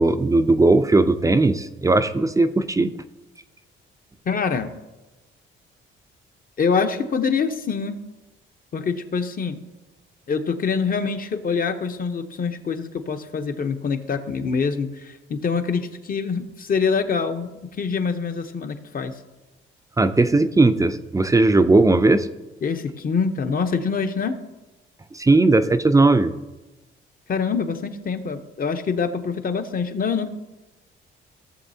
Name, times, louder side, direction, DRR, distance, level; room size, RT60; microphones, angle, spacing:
voice 1, 0.0-2.9 20.0-22.3 25.1-26.3, right 2 dB, 15° right, 10 dB, 0.5 m, -17 dB
voice 2, 4.2-4.7 6.6-8.0 8.7-9.6 10.3-17.5 17.8-19.1 22.6-24.4 27.3-30.3, left 5 dB, 45° left, 7 dB, 0.9 m, -25 dB
16.5 x 6.8 x 2.8 m, 1.1 s
cardioid pair, 95°, 21 cm